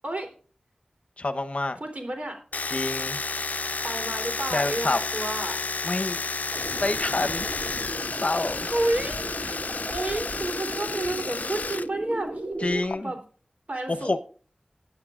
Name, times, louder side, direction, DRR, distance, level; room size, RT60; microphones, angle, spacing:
voice 1, 1.2-1.8 2.7-3.2 4.5-5.0 5.8-6.2 6.8-7.5 8.2-8.7 12.6-13.1 13.9-14.2, left 2 dB, 55° left, 8 dB, 0.9 m, -27 dB
voice 2, 1.8-2.4 3.5-5.6 8.6-9.6 9.9-13.2 13.7-14.1, right 2 dB, 60° right, 3 dB, 3.3 m, -31 dB
Domestic sounds home sounds, 2.5-11.9 12.1-13.0, left 4 dB, 85° left, 0.4 m, -31 dB
sound 1, 6.5-12.8, right 1 dB, 25° right, 2.8 m, -36 dB
19.0 x 9.6 x 2.5 m, 0.41 s
wide cardioid pair, 65°, 3 cm